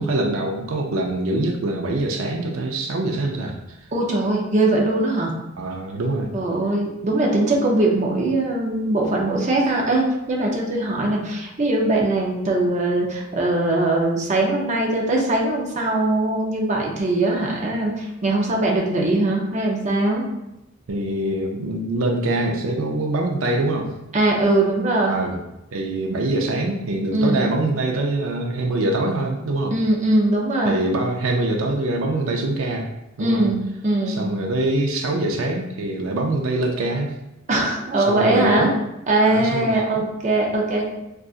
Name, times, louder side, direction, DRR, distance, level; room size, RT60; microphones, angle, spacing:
voice 1, 0.0-3.6 5.6-6.3 20.9-23.9 25.1-25.4 25.7-29.8 30.7-32.9 33.2-33.5 34.1-37.1 38.0-38.7 39.3-40.1, right 2 dB, 85° right, 1 dB, 0.4 m, -24 dB
voice 2, 3.9-5.3 6.3-20.3 24.1-25.2 27.1-27.5 29.7-30.8 33.2-34.2 37.5-38.7 39.1-40.8, right 2 dB, 35° right, -1 dB, 0.6 m, -21 dB
3.8 x 2.4 x 2.4 m, 0.92 s
head